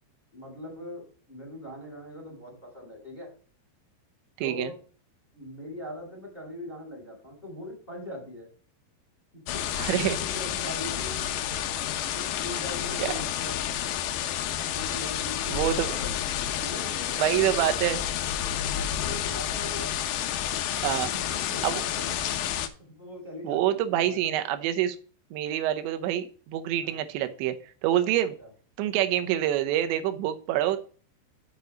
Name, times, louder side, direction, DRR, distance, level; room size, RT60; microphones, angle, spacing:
voice 1, 0.3-3.3 4.4-4.8 5.3-8.5 9.3-11.4 12.1-13.7 14.6-16.1 16.6-17.9 18.4-19.9 21.1-22.2 22.9-24.7 26.8-27.0 28.4-28.5, left 1 dB, 10° left, -1 dB, 4.0 m, -41 dB
voice 2, 4.4-4.7 9.8-10.2 13.0-13.1 15.5-16.0 17.2-18.0 20.8-21.1 21.6-21.8 23.4-25.0 25.3-27.6 27.8-28.3 28.8-30.8, right 12 dB, 80° right, 9 dB, 3.0 m, -26 dB
sound 1, 9.5-22.7, left 10 dB, 75° left, 2.8 m, -30 dB
6.8 x 6.8 x 5.1 m, 0.41 s
omnidirectional pair, 5.4 m